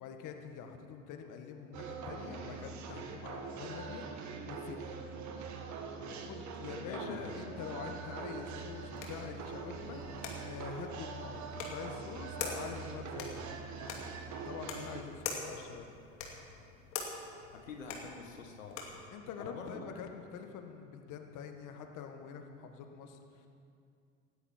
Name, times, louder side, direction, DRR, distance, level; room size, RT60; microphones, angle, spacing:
voice 1, 0.0-4.8 6.0-13.5 14.4-16.0 19.1-23.5, left 7 dB, 50° left, 5 dB, 1.7 m, -46 dB
sound 1, 1.7-15.0, right 5 dB, 45° right, 1.7 m, -43 dB
voice 2, 6.7-7.3 17.5-18.8 19.4-19.9, left 5 dB, 85° left, 3 dB, 1.4 m, -45 dB
sound 2, 8.3-19.1, left 5 dB, 70° left, 2.6 m, -45 dB
19.0 x 13.0 x 4.5 m, 2.4 s
hypercardioid pair, 75°, 39 cm